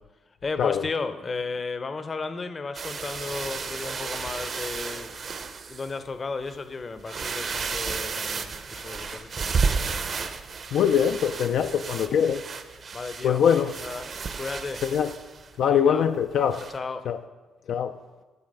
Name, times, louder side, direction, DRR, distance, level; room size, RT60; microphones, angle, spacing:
voice 1, 0.4-5.1 5.7-10.3 12.9-14.8 15.7-16.1 16.7-17.1, left 4 dB, 35° left, 0.6 m, -34 dB
sound 1, 2.7-5.9 6.5-6.6 7.0-15.5 16.5-16.8, right 5 dB, 45° right, 0.6 m, -32 dB
voice 2, 10.7-12.4 13.2-13.7 14.8-15.1 15.6-16.6 17.1-17.2 17.7-18.0, left 8 dB, 75° left, 0.3 m, -23 dB
10.5 x 4.8 x 5.4 m
cardioid pair, 90°, 0 cm